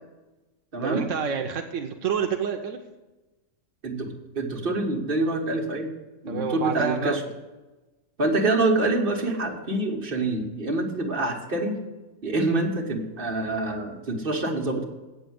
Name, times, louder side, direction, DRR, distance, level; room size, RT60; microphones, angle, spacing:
voice 1, 0.8-2.8 6.3-7.2, right 6 dB, 85° right, 4 dB, 1.1 m, -28 dB
voice 2, 4.3-5.9 6.2-7.2 8.2-11.8 12.2-14.8, right 2 dB, 45° right, 0 dB, 1.6 m, -26 dB
8.3 x 6.9 x 7.8 m, 1.1 s
omnidirectional pair, 1.3 m